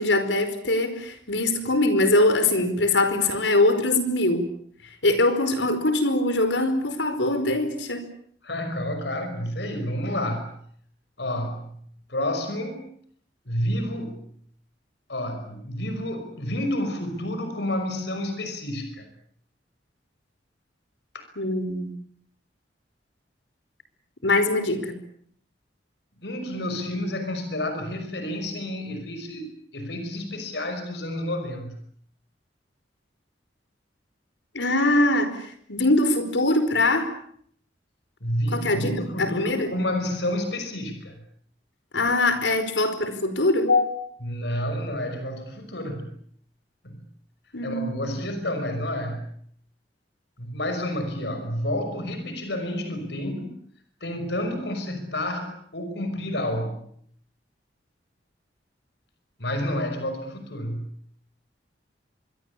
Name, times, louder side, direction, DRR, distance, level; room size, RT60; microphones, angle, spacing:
voice 1, 0.0-4.5 5.0-8.0 21.4-21.9 24.2-25.0 34.5-37.1 38.5-38.9 39.2-39.7 41.9-43.9 47.5-47.9, left 2 dB, 85° left, 10 dB, 4.9 m, -22 dB
voice 2, 8.4-10.6 11.2-11.8 12.1-12.8 13.5-14.2 15.1-19.1 26.2-31.8 38.2-41.2 44.2-46.1 46.8-47.0 47.6-49.3 50.4-53.6 54.0-56.9 59.4-60.9, left 1 dB, 70° left, 7 dB, 5.8 m, -30 dB
26.0 x 22.5 x 8.5 m, 0.64 s
head